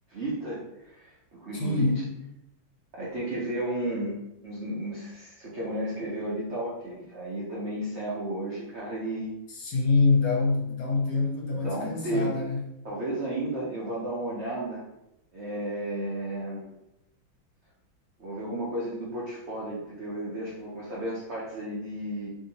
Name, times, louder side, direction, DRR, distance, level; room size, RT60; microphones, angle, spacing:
voice 1, 0.1-2.0 2.9-9.3 11.5-12.4 12.8-14.8 15.3-16.7 18.2-22.3, right 1 dB, 75° right, -6 dB, 0.6 m, -33 dB
voice 2, 1.5-2.0 9.5-12.6, left 3 dB, 70° left, -1 dB, 1.1 m, -25 dB
2.9 x 2.7 x 2.8 m, 0.85 s
omnidirectional pair, 2.1 m